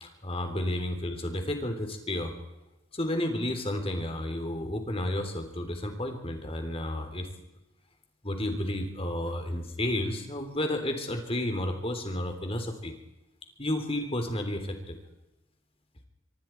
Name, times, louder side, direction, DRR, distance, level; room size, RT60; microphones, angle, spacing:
voice 1, 0.0-2.3 2.9-7.3 8.2-12.9 13.6-15.0, left 1 dB, 30° left, 5 dB, 3.4 m, -31 dB
25.5 x 23.5 x 4.6 m, 0.95 s
head